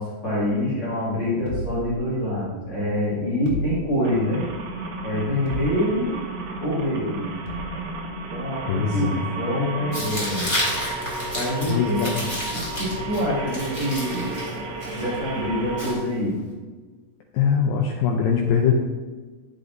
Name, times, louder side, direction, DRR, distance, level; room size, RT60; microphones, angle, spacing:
voice 1, 0.0-4.4 5.0-6.2 6.6-7.3 8.3-10.5 11.3-14.4 14.9-16.3, left 1 dB, 35° left, -9 dB, 3.2 m, -26 dB
sound 1, 1.5-2.6 3.5-4.4 5.5-6.2 7.5-7.9, left 1 dB, 70° left, 2.7 m, -34 dB
sound 2, 4.0-15.9, right 2 dB, 75° right, 3.2 m, -33 dB
voice 2, 8.7-9.3 11.7-12.1 17.3-18.7, left 7 dB, 90° left, 0 dB, 2.0 m, -22 dB
Tearing, 9.9-16.5, left 1 dB, 10° left, 2.2 m, -32 dB
11.0 x 8.5 x 2.7 m, 1.3 s
omnidirectional pair, 4.9 m